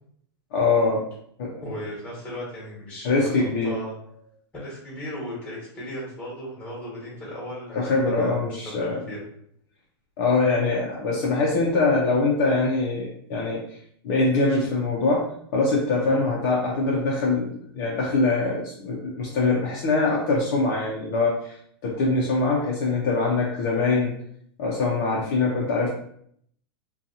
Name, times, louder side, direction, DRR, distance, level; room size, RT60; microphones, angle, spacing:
voice 1, 0.5-1.0 1.4-1.5 3.0-3.7 7.7-9.0 10.2-13.6 14.0-21.5 21.8-24.1 24.6-25.9, left 3 dB, 45° left, -4 dB, 0.6 m, -23 dB
voice 2, 1.6-4.0 4.5-8.4 8.8-9.2 14.5-14.6 16.0-16.3, equal, 10° left, -6 dB, 1.3 m, -36 dB
2.7 x 2.3 x 2.6 m, 0.67 s
supercardioid pair, 155°, 14 cm